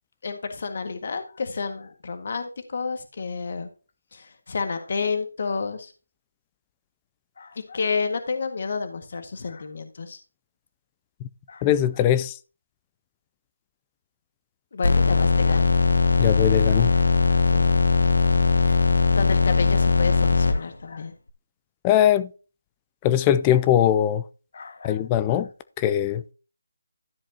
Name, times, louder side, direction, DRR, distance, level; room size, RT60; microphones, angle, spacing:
voice 1, 0.2-3.7 4.1-5.9 7.4-10.2 11.5-11.6 14.7-15.7 16.9-17.8 19.1-21.1 24.5-25.0, left 4 dB, 45° left, 1.7 m, -30 dB
voice 2, 11.6-12.4 16.2-16.9 21.8-22.3 23.0-24.2 24.8-25.5 25.8-26.2, left 11 dB, 15° left, 0.4 m, -20 dB
sound 1, 14.8-20.5, left 4 dB, 70° left, 1.1 m, -19 dB
13.0 x 7.3 x 2.8 m
figure-of-eight pair, 165°, 0 cm